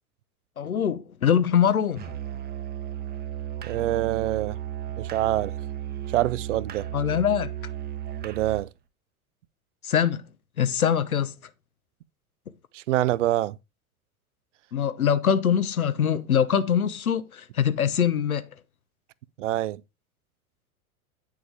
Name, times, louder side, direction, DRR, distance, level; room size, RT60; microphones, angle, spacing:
voice 1, 0.6-2.1 6.9-7.5 9.8-10.2 10.6-11.3 14.7-18.4, left 8 dB, 75° left, 0.9 m, -23 dB
Musical instrument, 2.0-8.7, right 11 dB, 20° right, 1.0 m, -34 dB
voice 2, 3.6-4.6 5.0-5.5 6.1-6.8 8.2-8.7 12.7-13.6 19.4-19.8, right 14 dB, 60° right, 0.7 m, -25 dB
9.4 x 6.9 x 3.3 m
figure-of-eight pair, 85°, 43 cm